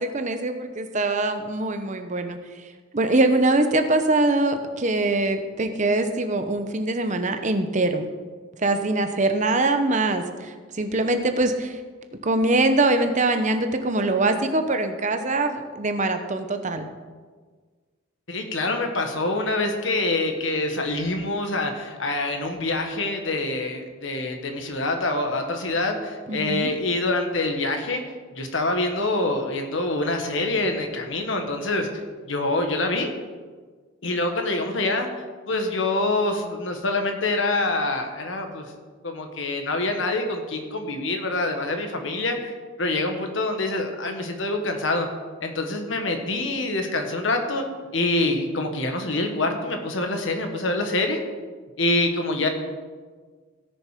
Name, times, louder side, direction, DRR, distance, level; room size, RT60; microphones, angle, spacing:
voice 1, 0.0-2.4 2.9-8.0 8.6-11.8 12.2-16.8 26.3-26.7, right 2 dB, 35° right, 7 dB, 0.8 m, -23 dB
voice 2, 18.3-28.0 28.3-33.1 34.0-35.1 35.5-38.7 39.0-45.1 45.4-47.6 47.9-51.2 51.8-52.5, left 2 dB, 65° left, 4 dB, 1.5 m, -25 dB
17.0 x 6.6 x 5.0 m, 1.5 s
head